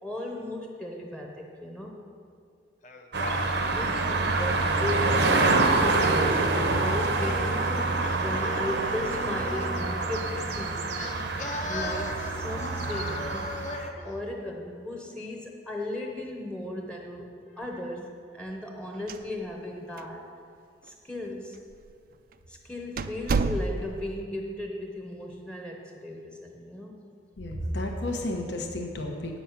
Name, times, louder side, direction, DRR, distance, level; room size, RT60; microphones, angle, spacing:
voice 1, 0.0-2.0 3.7-10.9 11.6-13.5 14.0-17.3 17.6-20.3 20.8-21.6 22.5-26.9, left 1 dB, 5° left, 1 dB, 0.8 m, -36 dB
Singing, 2.8-5.6 6.7-9.9 10.9-14.0, left 2 dB, 45° left, 0.7 m, -39 dB
sound 1, 3.1-13.9, right 3 dB, 70° right, 0.8 m, -26 dB
sound 2, 18.9-19.7 20.0-20.1 20.8-20.9 21.7-21.9 22.3-22.4 23.0-24.1, right 4 dB, 50° right, 0.3 m, -29 dB
voice 2, 27.4-29.4, left 1 dB, 75° left, 2 dB, 1.1 m, -32 dB
8.4 x 7.3 x 5.8 m, 2.3 s
head